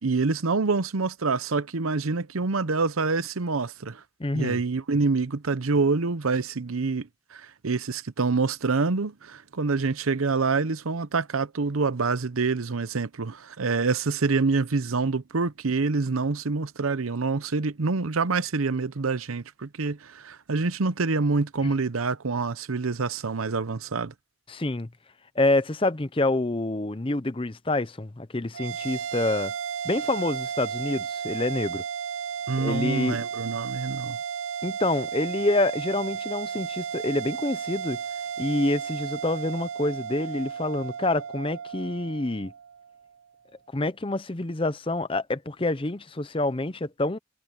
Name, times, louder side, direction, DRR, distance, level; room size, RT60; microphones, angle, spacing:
voice 1, 0.0-4.0 4.3-24.1 32.5-34.2, right 4 dB, 90° right, 0.8 m, -26 dB
voice 2, 4.2-4.6 21.6-21.7 24.5-24.9 25.4-29.5 29.8-31.8 32.6-33.2 34.6-38.0 38.4-42.5 43.7-47.2, left 2 dB, 25° left, 0.7 m, -27 dB
sound 1, 28.5-43.1, right 7 dB, 70° right, 0.4 m, -34 dB
head